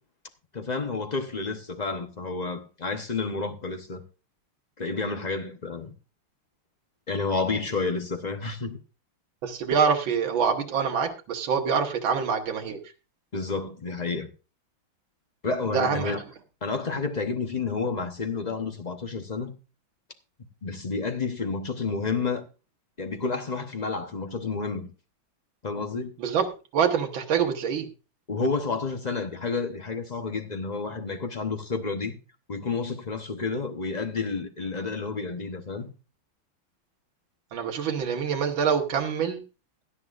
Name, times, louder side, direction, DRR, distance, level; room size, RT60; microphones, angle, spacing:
voice 1, 0.5-4.0 4.8-5.9 7.1-8.8 13.3-14.3 15.4-16.2 16.6-19.5 20.6-22.4 23.0-24.9 25.6-26.1 28.3-32.2 32.5-35.9, left 4 dB, 45° left, 0.5 m, -30 dB
voice 2, 9.4-12.8 15.7-16.1 26.2-26.5 26.7-27.9 37.5-39.4, right 6 dB, 75° right, 2.1 m, -25 dB
17.0 x 11.0 x 2.5 m
omnidirectional pair, 2.2 m